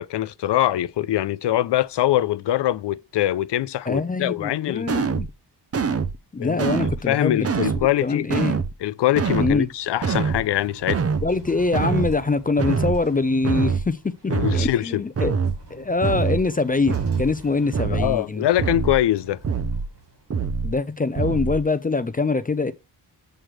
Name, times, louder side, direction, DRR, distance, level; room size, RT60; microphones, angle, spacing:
voice 1, 0.0-4.9 6.4-6.6 7.1-8.3 8.8-11.0 14.3-15.0 17.9-19.4, left 13 dB, 85° left, 0.5 m, -23 dB
voice 2, 3.9-5.3 6.3-7.7 8.0-8.6 9.4-9.7 11.2-15.4 15.7-18.5 20.6-22.7, left 3 dB, 20° left, 0.4 m, -24 dB
sound 1, 4.9-5.3 5.7-6.2 6.6-7.0 7.4-7.9 8.3-8.7 9.2-9.6 10.0-10.4 10.9-11.3 11.7-12.2 12.6-13.0 13.4-13.9 14.3-14.7 15.2-15.6 16.0-16.4 16.9-17.3 17.7-18.2 18.6-19.0 19.4-19.9 20.3-20.8 21.2-21.6, right 5 dB, 35° right, 0.6 m, -24 dB
sound 2, 8.9-20.8, right 2 dB, 75° right, 3.6 m, -46 dB
7.5 x 6.4 x 3.2 m
wide cardioid pair, 135°, 40 cm